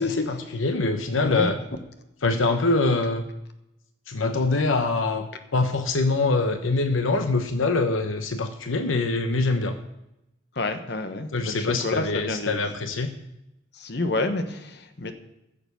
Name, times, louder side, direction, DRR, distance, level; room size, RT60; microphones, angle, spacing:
voice 1, 0.0-1.6 2.2-3.3 4.1-9.8 11.3-13.1, left 3 dB, 80° left, 7 dB, 0.9 m, -24 dB
voice 2, 10.5-12.6 13.7-15.1, left 2 dB, 55° left, 7 dB, 1.1 m, -28 dB
14.5 x 6.8 x 6.9 m, 0.89 s
head